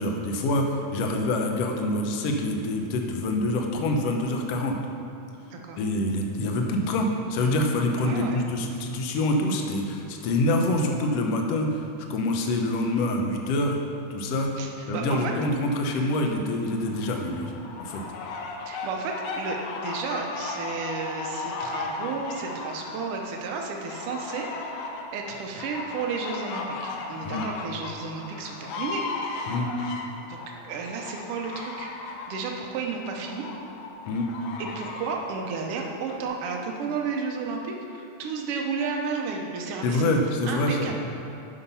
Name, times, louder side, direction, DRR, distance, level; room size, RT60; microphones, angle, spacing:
voice 1, 0.0-4.8 5.8-11.8 12.1-13.8 14.1-14.5 14.9-17.5 17.8-18.0 27.2-27.5 29.5-29.7 34.1-34.3 39.8-40.9, left 1 dB, 70° left, 2 dB, 1.6 m, -26 dB
voice 2, 5.5-5.8 8.0-8.4 14.6-15.3 18.6-24.5 25.1-29.0 30.3-30.4 30.6-31.9 32.3-33.4 34.6-40.2 40.5-41.0, right 5 dB, 70° right, 1 dB, 1.4 m, -32 dB
sound 1, 16.7-36.2, left 4 dB, 90° left, 2.4 m, -36 dB
9.9 x 5.8 x 5.5 m, 2.7 s
omnidirectional pair, 3.7 m